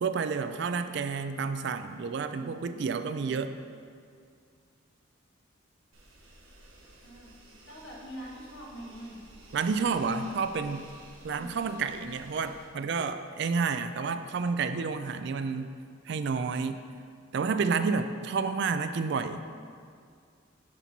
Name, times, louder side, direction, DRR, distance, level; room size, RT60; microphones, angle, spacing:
voice 1, 0.0-3.5 9.5-10.9 11.2-15.7 16.1-16.8 17.3-19.4, right 5 dB, 55° right, 10 dB, 0.3 m, -30 dB
voice 2, 2.4-2.7 7.0-7.3 7.6-9.2 11.2-11.5, equal, 65° left, -3 dB, 1.5 m, -44 dB
sound 1, 5.9-12.6, right 1 dB, 85° right, 1.3 m, -53 dB
10.0 x 4.4 x 4.1 m, 2.2 s
head